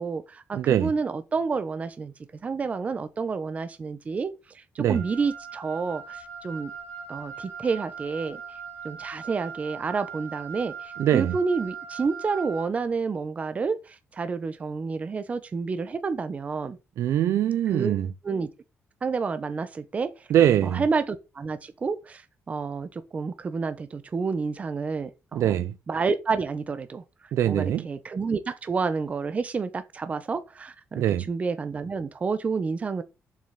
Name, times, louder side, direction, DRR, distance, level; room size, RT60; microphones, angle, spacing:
voice 1, 0.0-2.1 2.4-6.7 7.1-8.4 8.8-16.8 17.7-17.9 18.2-18.5 19.0-20.3 20.6-25.6 25.9-27.0 27.4-33.0, right 4 dB, 30° right, 1.0 m, -29 dB
voice 2, 0.5-0.9 4.8-5.0 11.0-11.4 17.0-18.1 20.3-20.8 25.3-25.7 27.3-27.9 31.0-31.3, right 11 dB, 80° right, 0.6 m, -22 dB
Wind instrument woodwind instrument, 4.9-12.7, right 6 dB, 30° left, 2.6 m, -40 dB
7.5 x 6.2 x 6.9 m
cardioid pair, 155°, 5 cm